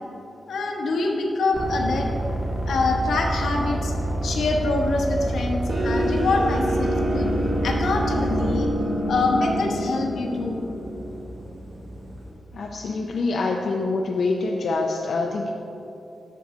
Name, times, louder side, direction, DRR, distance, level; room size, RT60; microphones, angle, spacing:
voice 1, 0.5-2.1 2.7-3.9 4.2-7.3 7.6-8.7 9.1-10.7, left 3 dB, 80° left, 1 dB, 1.0 m, -25 dB
sound 1, 1.5-8.6, right 1 dB, 10° right, 0.9 m, -27 dB
sound 2, 5.7-12.3, equal, 60° right, 1.1 m, -27 dB
voice 2, 12.5-15.5, left 3 dB, 60° left, 0 dB, 0.5 m, -25 dB
6.8 x 6.1 x 4.9 m, 3.0 s
wide cardioid pair, 175°, 0 cm